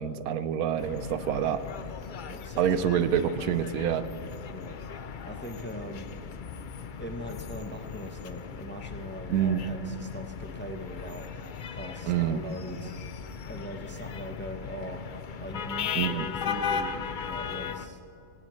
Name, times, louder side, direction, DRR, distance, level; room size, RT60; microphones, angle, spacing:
voice 1, 0.0-1.6 2.6-4.0 9.3-9.6 12.1-12.4 16.0-16.3, right 9 dB, 85° right, 12 dB, 1.2 m, -27 dB
sound 1, 0.8-17.9, left 7 dB, 65° left, 0.5 m, -37 dB
voice 2, 2.1-2.9 4.5-4.8 5.3-6.1 7.0-11.3 11.7-13.2 13.5-17.0 17.2-18.0, equal, 10° left, 4 dB, 0.7 m, -41 dB
18.0 x 18.0 x 3.2 m, 2.7 s
omnidirectional pair, 1.5 m